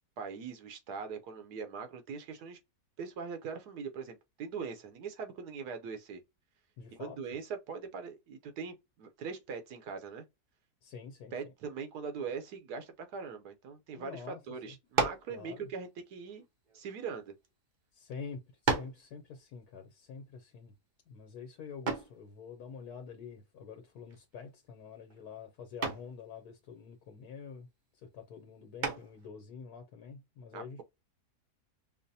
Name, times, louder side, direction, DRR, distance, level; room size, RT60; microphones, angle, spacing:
voice 1, 0.2-2.6 3.0-6.2 7.0-10.2 11.3-16.4 16.7-17.3 30.5-30.8, right 5 dB, 80° right, 1.2 m, -41 dB
voice 2, 6.8-7.2 10.8-11.3 14.0-14.4 14.7-14.8 15.3-15.7 17.9-20.7 21.1-27.7 28.0-30.8, left 6 dB, 80° left, 1.2 m, -47 dB
sound 1, 14.9-15.3 16.3-17.5 18.1-18.2 18.7-19.1 21.9-22.2 24.1-24.5 24.8-25.2 25.8-26.1 28.8-29.3, right 4 dB, 45° right, 0.6 m, -33 dB
5.5 x 2.0 x 2.7 m
omnidirectional pair, 1.7 m